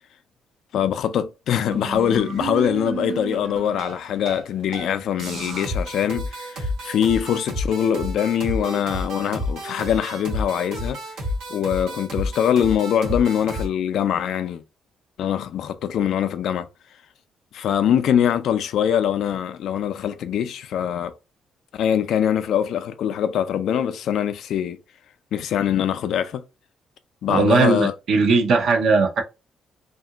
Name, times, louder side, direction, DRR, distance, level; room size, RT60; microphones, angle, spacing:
voice 1, 0.7-11.0 11.5-14.6 15.2-16.7 17.5-21.1 21.7-24.8 25.3-26.4 27.2-27.9, left 9 dB, 75° left, 0.3 m, -23 dB
sound 1, 1.7-4.4 4.7-4.9 5.2-13.7, equal, 90° right, 1.0 m, -31 dB
voice 2, 27.3-29.2, right 4 dB, 70° right, 0.7 m, -18 dB
2.8 x 2.5 x 2.3 m
cardioid pair, 90°, 0 cm